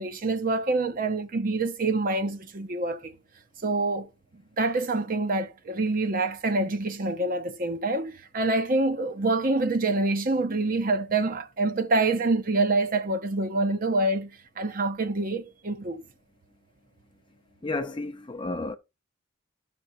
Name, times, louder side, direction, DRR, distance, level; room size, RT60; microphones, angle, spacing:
voice 1, 0.0-3.1 3.6-4.1 4.6-14.3 14.6-16.0, right 2 dB, 40° right, 0.6 m, -26 dB
voice 2, 17.6-18.7, left 2 dB, 25° left, 0.6 m, -32 dB
14.0 x 6.0 x 2.6 m
head